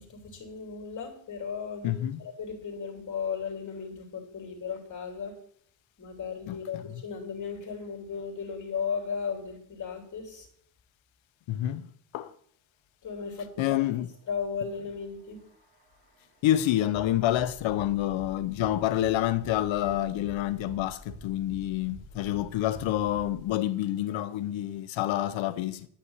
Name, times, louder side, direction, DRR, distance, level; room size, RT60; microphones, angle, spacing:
voice 1, 0.0-5.3 6.0-10.5 13.0-13.8 14.3-15.4, left 6 dB, 40° left, 3.0 m, -36 dB
voice 2, 1.8-2.2 6.5-6.8 11.5-11.9 12.1-12.3 13.6-14.1 16.4-25.9, left 13 dB, 70° left, 0.7 m, -28 dB
sound 1, 14.9-23.5, right 2 dB, 20° right, 4.9 m, -48 dB
11.0 x 5.8 x 8.0 m
cardioid pair, 150°, 47 cm